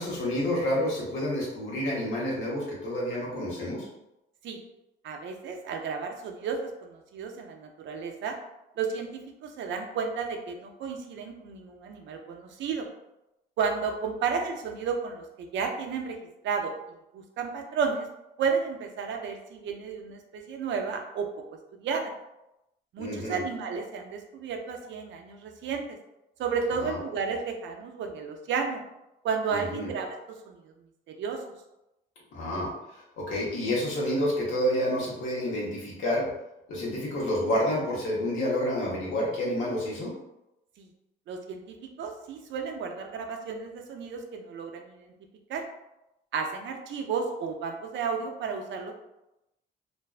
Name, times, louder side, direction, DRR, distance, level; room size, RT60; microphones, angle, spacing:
voice 1, 0.0-3.9 23.0-23.4 26.8-27.0 29.5-29.9 32.3-32.7 33.2-36.3 36.7-40.1, equal, 85° left, -5 dB, 0.9 m, -29 dB
voice 2, 5.0-8.4 8.8-12.9 13.6-16.2 16.4-16.7 17.1-18.1 18.4-21.3 21.8-22.1 22.9-26.0 26.4-28.8 29.2-30.7 31.1-31.4 40.8-40.9 41.3-41.6 42.0-45.1 45.5-45.6 46.3-48.9, right 5 dB, 70° right, 3 dB, 0.5 m, -32 dB
2.5 x 2.2 x 2.3 m, 0.90 s
cardioid pair, 90°, 20 cm